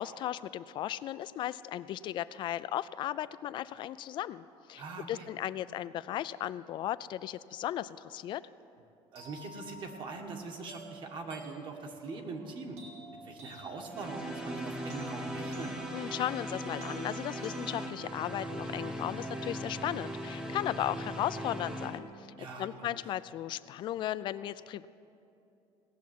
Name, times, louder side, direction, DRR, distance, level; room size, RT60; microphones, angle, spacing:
voice 1, 0.0-4.8 5.1-8.4 15.9-22.3 22.6-24.9, left 12 dB, 45° left, 16 dB, 0.4 m, -36 dB
voice 2, 4.8-5.3 9.1-12.8 13.2-15.8 22.4-23.0, right 3 dB, 45° right, 4 dB, 1.5 m, -42 dB
sound 1, 9.1-19.2, right 4 dB, 65° right, 3.0 m, -52 dB
sound 2, 13.9-22.0, equal, 5° right, 0.9 m, -39 dB
18.0 x 7.2 x 9.3 m, 2.7 s
cardioid pair, 160°, 11 cm